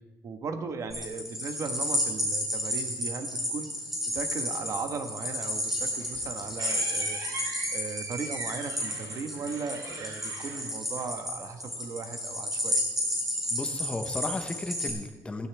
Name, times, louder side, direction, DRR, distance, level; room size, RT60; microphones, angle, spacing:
voice 1, 0.2-3.7 4.1-7.2 7.7-12.8, right 5 dB, 50° right, 7 dB, 1.3 m, -37 dB
sound 1, 0.9-14.9, left 1 dB, 5° right, 4.4 m, -32 dB
sound 2, 5.6-11.4, right 2 dB, 70° right, 3.8 m, -42 dB
voice 2, 13.5-15.5, left 2 dB, 15° left, 6 dB, 0.9 m, -34 dB
15.5 x 15.5 x 3.4 m, 1.2 s
cardioid pair, 160°, 7 cm